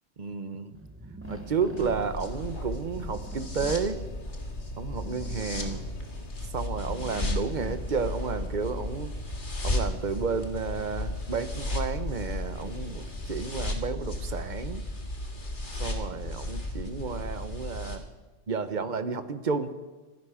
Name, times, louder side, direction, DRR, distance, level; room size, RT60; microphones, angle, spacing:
voice 1, 0.2-0.8 1.3-4.0 4.8-5.9 6.5-9.1 9.6-14.8 15.7-18.1 18.5-19.7, right 5 dB, 40° right, 11 dB, 1.0 m, -32 dB
sound 1, 0.7-8.4, right 2 dB, 15° right, 0.7 m, -46 dB
sound 2, 1.2-13.9, left 6 dB, 65° left, 1.1 m, -46 dB
sound 3, 1.8-18.0, left 1 dB, 40° left, 1.8 m, -34 dB
26.0 x 10.5 x 5.0 m, 1.2 s
omnidirectional pair, 1.3 m